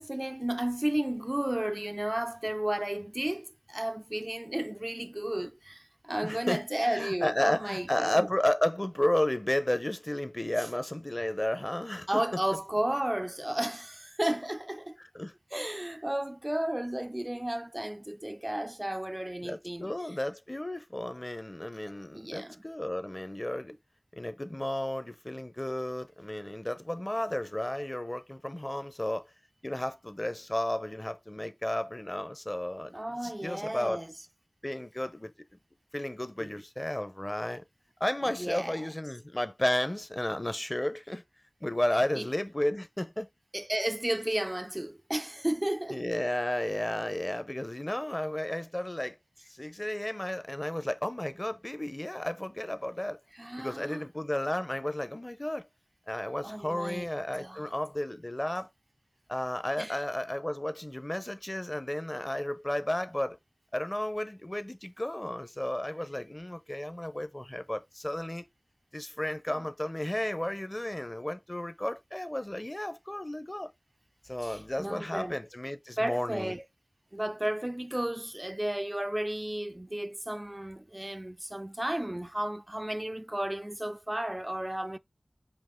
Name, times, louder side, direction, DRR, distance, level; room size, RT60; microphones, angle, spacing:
voice 1, 0.0-8.3 10.6-10.7 12.1-15.0 15.5-19.9 22.1-22.6 32.9-34.1 36.4-36.6 38.4-38.9 42.1-42.3 43.5-46.0 53.3-54.0 56.4-57.1 57.3-57.7 59.8-60.0 74.4-75.4 76.0-76.6 77.1-85.0, right 1 dB, 25° right, 0.3 m, -33 dB
voice 2, 6.2-12.1 15.0-15.3 19.4-23.7 24.1-29.3 29.6-32.9 33.2-34.0 34.6-35.3 35.9-37.6 38.0-41.2 41.6-43.3 45.9-49.2 49.5-53.2 53.6-55.7 56.1-58.7 59.3-63.4 63.7-68.4 68.9-73.7 74.2-76.5, left 1 dB, 30° left, 0.7 m, -33 dB
5.3 x 2.4 x 3.7 m
wide cardioid pair, 40°, 0 cm